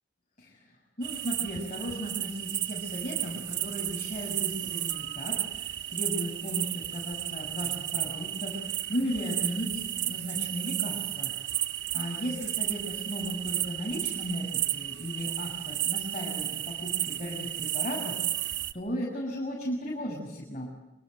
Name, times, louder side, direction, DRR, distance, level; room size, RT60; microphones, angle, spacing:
voice 1, 1.0-11.7 11.9-20.7, equal, 40° left, -3 dB, 7.1 m, -36 dB
sound 1, 1.0-18.7, right 13 dB, 70° right, 1.3 m, -33 dB
27.5 x 26.0 x 7.9 m, 1.0 s
head